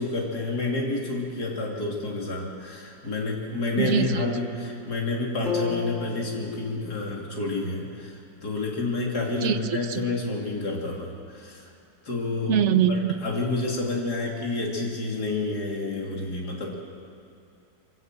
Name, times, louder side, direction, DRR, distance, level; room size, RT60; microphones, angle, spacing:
voice 1, 0.0-11.7 12.1-12.6 13.2-16.8, left 2 dB, 70° left, -2 dB, 3.5 m, -29 dB
voice 2, 3.8-4.2 9.4-10.0 12.5-13.1, right 8 dB, 55° right, 11 dB, 0.9 m, -23 dB
sound 1, 5.5-9.5, left 6 dB, ahead, 4.6 m, -36 dB
23.5 x 17.0 x 7.5 m, 2.5 s
omnidirectional pair, 1.8 m